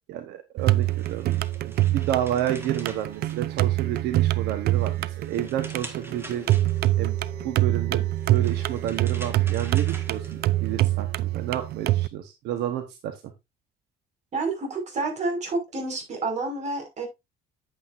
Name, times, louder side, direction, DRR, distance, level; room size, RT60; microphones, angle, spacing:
voice 1, 0.1-1.4 1.6-6.5 7.0-7.2 7.4-8.0 8.3-13.3, right 11 dB, 85° right, 1.2 m, -30 dB
sound 1, 0.6-4.0 4.4-7.1 8.0-10.7, right 1 dB, 15° right, 1.7 m, -46 dB
sound 2, 0.6-12.1, right 15 dB, 65° right, 0.5 m, -25 dB
sound 3, 5.8-10.7, left 6 dB, 45° left, 3.3 m, -47 dB
voice 2, 14.3-17.1, right 3 dB, 45° right, 5.6 m, -29 dB
9.4 x 8.5 x 2.6 m
cardioid pair, 110°, 17 cm